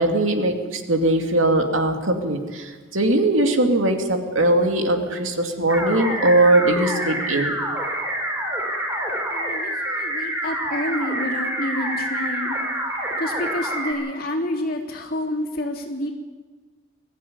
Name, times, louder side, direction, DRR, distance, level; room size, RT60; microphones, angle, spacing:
voice 1, 0.0-7.6, right 1 dB, 85° right, 4 dB, 2.6 m, -20 dB
sound 1, 5.7-13.9, right 1 dB, 10° right, 4.5 m, -27 dB
voice 2, 9.3-12.6 13.2-16.1, left 1 dB, 45° left, -1 dB, 3.5 m, -28 dB
21.5 x 14.5 x 9.5 m, 1.4 s
head